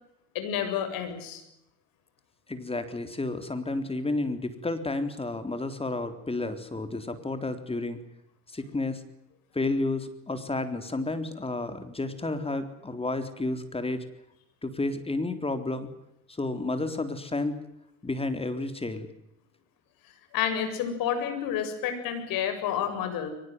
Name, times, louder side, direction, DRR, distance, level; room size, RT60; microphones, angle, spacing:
voice 1, 0.3-1.4 20.3-23.3, left 9 dB, 65° left, 8 dB, 7.5 m, -29 dB
voice 2, 2.5-8.0 8.5-9.0 9.5-14.1 14.6-15.9 16.3-17.6 18.0-19.1, left 2 dB, 15° left, 9 dB, 3.7 m, -31 dB
23.5 x 20.5 x 9.6 m, 0.84 s
supercardioid pair, 85°, 37 cm